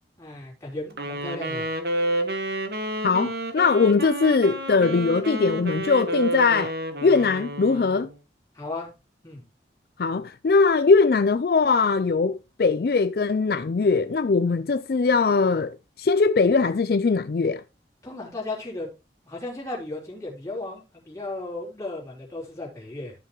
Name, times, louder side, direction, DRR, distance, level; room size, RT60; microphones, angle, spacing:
voice 1, 0.2-1.7 8.5-8.9 9.2-9.4 18.0-18.9 19.2-23.1, left 2 dB, 15° left, 3.7 m, -35 dB
Wind instrument woodwind instrument, 0.9-8.1, right 1 dB, 60° right, 1.4 m, -30 dB
voice 2, 3.0-6.7 7.0-8.1 10.0-17.6, left 4 dB, 55° left, 0.4 m, -21 dB
13.5 x 5.8 x 3.1 m
head